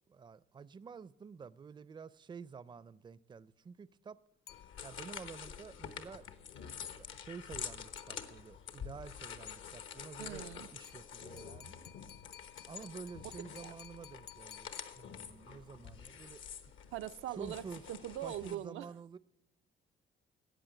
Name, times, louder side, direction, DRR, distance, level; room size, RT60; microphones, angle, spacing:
voice 1, 0.1-4.2 4.8-6.3 6.8-11.8 12.6-16.4 17.3-17.9 18.2-19.2, right 5 dB, 25° right, 0.4 m, -49 dB
sound 1, 4.5-18.5, left 8 dB, 75° left, 1.1 m, -48 dB
sound 2, 4.5-5.2 8.0-8.7 10.8-15.5, left 10 dB, 60° left, 0.7 m, -57 dB
voice 2, 10.2-10.7 13.6-13.8 16.9-18.9, right 12 dB, 85° right, 0.4 m, -42 dB
14.0 x 8.4 x 9.0 m
cardioid pair, 90°, 20 cm